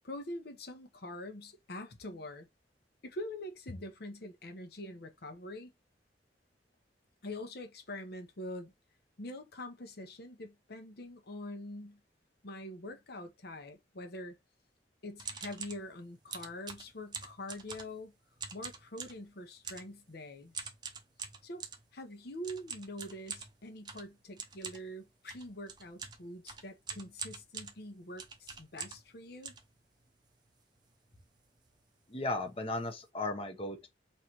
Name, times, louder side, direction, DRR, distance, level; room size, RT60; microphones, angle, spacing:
voice 1, 0.0-2.5 3.0-5.7 7.2-8.7 9.2-12.0 12.4-14.4 15.0-18.1 18.5-20.7 21.4-21.6 21.9-29.5, left 1 dB, 60° left, 0.9 m, -44 dB
sound 1, 15.2-15.8 16.3-18.0 18.4-19.2 19.6-19.9 20.5-21.8 22.4-29.1 29.4-30.3 30.8-30.9 31.0-31.3 31.6-31.8 32.4-32.5 32.7-33.0, right 5 dB, 25° right, 0.6 m, -44 dB
voice 2, 32.1-33.9, left 2 dB, 30° left, 0.9 m, -36 dB
3.2 x 2.7 x 4.5 m
head